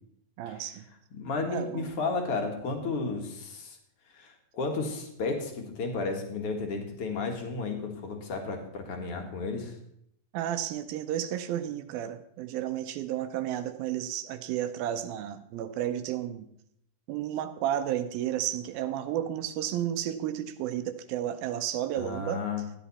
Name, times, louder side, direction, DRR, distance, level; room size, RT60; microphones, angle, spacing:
voice 1, 0.4-0.8 1.5-1.9 10.3-16.5 17.1-22.4, right 11 dB, 85° right, 10 dB, 2.5 m, -32 dB
voice 2, 1.1-3.8 4.1-9.8 22.0-22.6, left 3 dB, 50° left, 3 dB, 2.2 m, -33 dB
13.5 x 10.0 x 4.2 m, 0.72 s
omnidirectional pair, 4.2 m